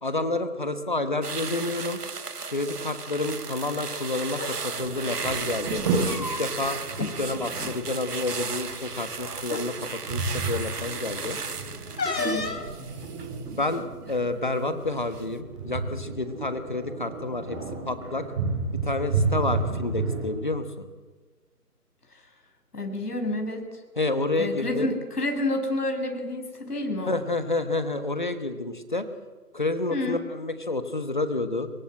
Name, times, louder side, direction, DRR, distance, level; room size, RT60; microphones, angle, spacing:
voice 1, 0.0-2.0 2.5-5.8 6.2-11.4 13.6-17.6 17.9-18.2 18.8-20.9 24.0-24.9 27.1-29.1 29.5-31.7, left 2 dB, 30° left, 9 dB, 1.3 m, -29 dB
sound 1, 1.2-14.6 14.9-15.2, right 4 dB, 70° right, 1.8 m, -35 dB
sound 2, 4.4-4.5 5.8-6.7 7.0-7.1 7.5-7.7 8.7-8.8 9.4-9.7 12.0-12.7, left 4 dB, 90° left, 3.5 m, -31 dB
sound 3, 4.7-20.2, right 3 dB, 20° right, 6.1 m, -32 dB
voice 2, 22.7-23.6 24.4-27.2 29.9-30.2, left 1 dB, 70° left, 4 dB, 6.7 m, -29 dB
24.0 x 22.5 x 7.7 m, 1.3 s
hypercardioid pair, 175°, 48 cm